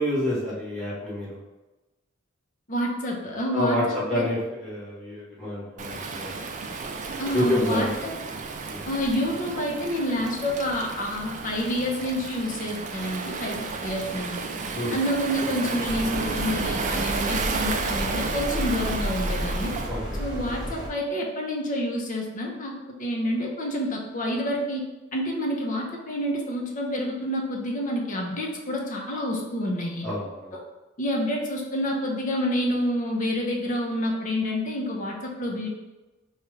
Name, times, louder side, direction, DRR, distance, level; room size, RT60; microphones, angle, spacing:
voice 1, 0.0-1.4 3.5-6.4 7.3-7.9 8.7-8.8 14.7-15.0 19.9-20.2 30.0-30.5, left 1 dB, 5° left, -9 dB, 1.2 m, -28 dB
voice 2, 2.7-4.2 7.2-8.1 8.9-14.4 14.9-19.7 20.2-22.7 23.0-24.8 25.1-30.1 31.0-35.7, equal, 40° left, -1 dB, 0.8 m, -28 dB
Waves surf, 5.8-19.9, right 4 dB, 40° right, 0.4 m, -32 dB
sound 1, 15.8-20.9, equal, 20° right, 1.0 m, -32 dB
5.0 x 2.4 x 3.1 m, 1.1 s
head